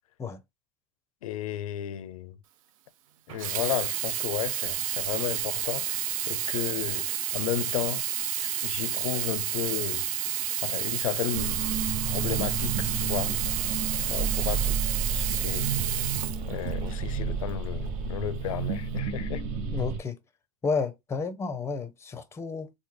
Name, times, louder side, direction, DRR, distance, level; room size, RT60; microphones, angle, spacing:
voice 1, 1.2-2.4 3.3-8.1 8.4-10.1 10.6-11.7 12.1-13.3 14.1-14.7 15.1-15.7 16.5-19.5, left 12 dB, 85° left, 0.5 m, -33 dB
Sink (filling or washing), 3.3-17.1 17.8-17.9, right 11 dB, 80° right, 0.4 m, -30 dB
sound 1, 11.3-20.0, right 6 dB, 55° right, 0.8 m, -31 dB
voice 2, 19.7-20.2 20.6-22.7, left 4 dB, 15° left, 0.5 m, -31 dB
3.2 x 2.1 x 3.5 m
hypercardioid pair, 95°, 17 cm